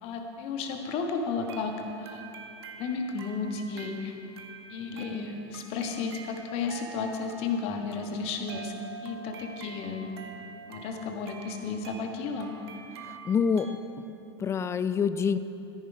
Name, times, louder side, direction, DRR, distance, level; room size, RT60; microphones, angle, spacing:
voice 1, 0.0-2.2 2.7-4.1 4.7-8.7 9.0-10.1 10.7-12.5, left 4 dB, 45° left, 4 dB, 1.4 m, -33 dB
sound 1, 1.4-13.8, right 5 dB, 65° right, 1.1 m, -46 dB
voice 2, 13.0-13.8 14.4-15.4, left 6 dB, 20° left, 13 dB, 0.4 m, -27 dB
14.0 x 10.5 x 4.8 m, 2.8 s
figure-of-eight pair, 85°, 15 cm